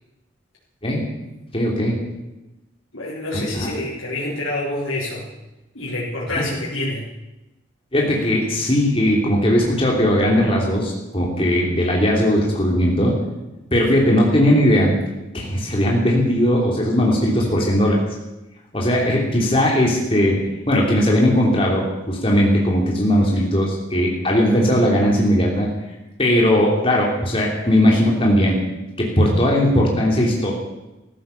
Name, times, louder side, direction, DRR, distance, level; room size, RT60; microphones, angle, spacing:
voice 1, 1.5-2.0 3.3-3.7 6.3-6.4 7.9-13.1 13.7-14.9 15.3-18.0 18.7-20.3 20.7-25.7 26.2-28.6 29.0-30.5, equal, 25° left, -2 dB, 3.1 m, -18 dB
voice 2, 2.9-5.3 5.7-7.1, left 1 dB, 80° left, -7 dB, 4.0 m, -27 dB
14.5 x 14.0 x 7.0 m, 0.99 s
head